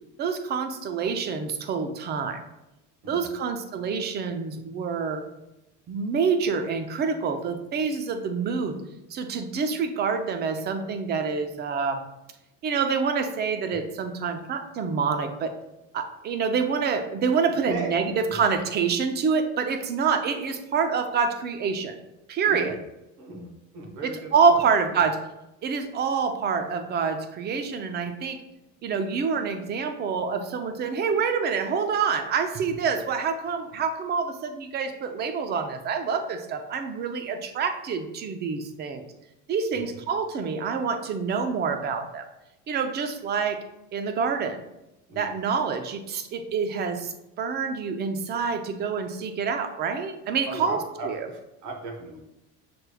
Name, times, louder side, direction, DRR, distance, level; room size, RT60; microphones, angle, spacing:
voice 1, 0.2-2.4 3.1-5.2 5.9-8.8 9.1-12.1 12.6-15.5 15.9-21.9 22.3-22.8 24.0-25.2 25.6-28.4 28.8-39.0 39.5-42.2 42.7-43.6 43.9-44.6 45.2-50.8 51.0-51.3, right 5 dB, 30° right, 7 dB, 0.5 m, -27 dB
voice 2, 3.0-3.4 17.6-18.4 22.5-22.8 23.2-24.6 24.9-25.1 39.7-40.0 45.1-45.4 50.5-52.2, right 2 dB, 65° right, 2 dB, 1.1 m, -38 dB
5.9 x 3.4 x 2.2 m, 0.91 s
cardioid pair, 135°, 33 cm